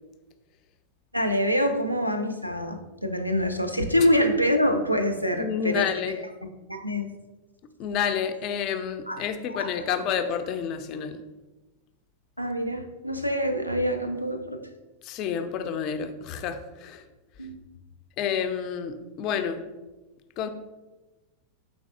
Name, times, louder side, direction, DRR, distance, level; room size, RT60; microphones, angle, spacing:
voice 1, 1.1-6.2 6.7-7.1 9.1-9.2 9.5-9.7 12.4-14.6 17.4-17.6, equal, 90° right, 6 dB, 0.4 m, -25 dB
voice 2, 5.3-6.2 7.8-11.2 15.0-17.0 18.2-19.7 20.4-20.5, left 8 dB, 40° left, 9 dB, 0.3 m, -29 dB
5.1 x 3.4 x 2.4 m, 1.1 s
figure-of-eight pair, 90°, 0 cm